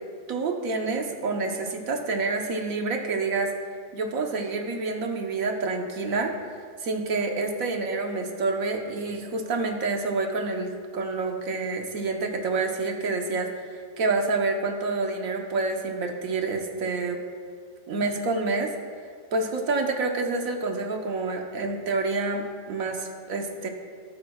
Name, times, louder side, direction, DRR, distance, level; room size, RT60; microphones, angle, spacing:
voice 1, 0.3-3.5 3.9-6.3 6.8-17.2 17.9-18.7 19.3-23.7, right 3 dB, 80° right, 3 dB, 1.5 m, -28 dB
17.5 x 7.5 x 2.4 m, 2.1 s
omnidirectional pair, 1.4 m